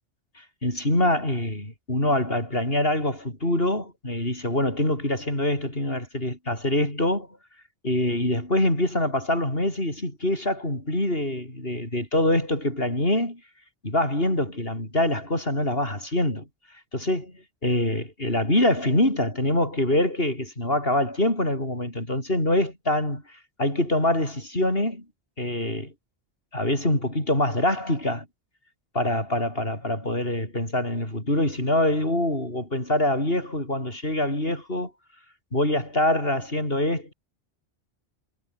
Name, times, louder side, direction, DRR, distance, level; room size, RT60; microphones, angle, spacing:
voice 1, 0.6-7.3 7.8-13.4 13.8-16.4 16.9-17.2 17.6-23.2 23.6-25.0 25.4-25.9 26.5-28.3 28.9-34.9 35.5-37.1, left 1 dB, 60° left, 8.0 m, -24 dB
omnidirectional pair, 1.1 m